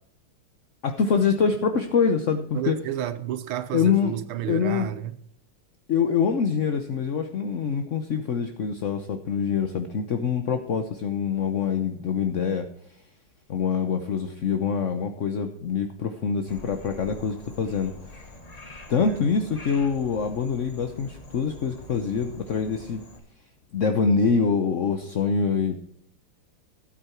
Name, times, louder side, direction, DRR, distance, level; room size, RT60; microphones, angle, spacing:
voice 1, 0.8-2.8 3.7-4.1 4.5-4.9 5.9-12.7 13.5-18.0 18.9-23.0 23.7-25.7, left 6 dB, 55° left, 0.9 m, -25 dB
voice 2, 2.5-5.2 18.9-19.2, right 11 dB, 85° right, 1.7 m, -31 dB
Frog, 16.5-23.2, left 1 dB, 20° left, 1.2 m, -45 dB
13.0 x 8.7 x 4.5 m
omnidirectional pair, 2.3 m